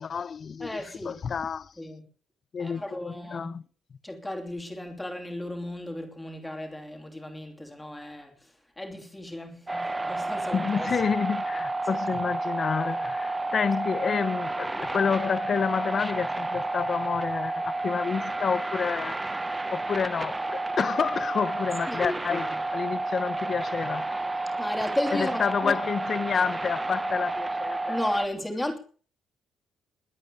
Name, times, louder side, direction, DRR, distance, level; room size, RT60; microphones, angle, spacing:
voice 1, 0.0-1.7 2.5-3.6 10.5-19.2 19.7-24.2 25.1-28.0, left 6 dB, 35° left, 0.7 m, -29 dB
voice 2, 0.6-1.2 1.8-2.0 2.6-3.5 4.0-8.3 8.8-10.9 11.8-12.2 21.9-22.6 24.6-25.8 27.9-28.8, left 1 dB, 5° left, 2.9 m, -34 dB
sound 1, 9.7-28.3, right 2 dB, 10° right, 0.7 m, -31 dB
21.0 x 8.7 x 6.9 m
cardioid pair, 170°, 0 cm